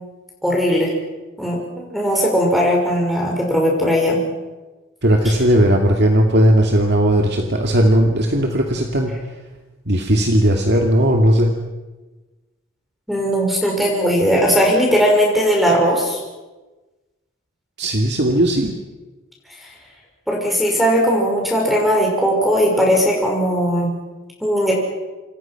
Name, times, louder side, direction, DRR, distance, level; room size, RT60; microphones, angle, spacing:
voice 1, 0.4-0.9 1.4-4.2 13.1-16.2 20.3-23.9 24.4-24.7, equal, ahead, -1 dB, 5.9 m, -18 dB
voice 2, 5.0-9.1 9.9-11.5 17.8-18.7, equal, 55° right, 1 dB, 2.6 m, -16 dB
28.0 x 28.0 x 6.1 m, 1.2 s
head